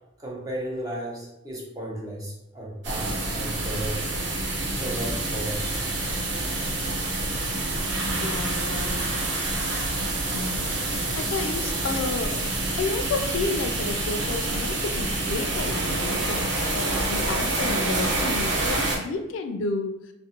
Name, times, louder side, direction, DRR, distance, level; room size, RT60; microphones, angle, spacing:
voice 1, 0.2-4.0 4.8-5.8, right 1 dB, 20° right, -4 dB, 0.6 m, -34 dB
sound 1, 2.8-19.0, right 2 dB, 65° right, 0.6 m, -27 dB
voice 2, 8.0-9.3 10.3-12.4 12.8-20.0, left 3 dB, 85° left, 7 dB, 0.3 m, -31 dB
2.4 x 2.1 x 2.8 m, 0.90 s
head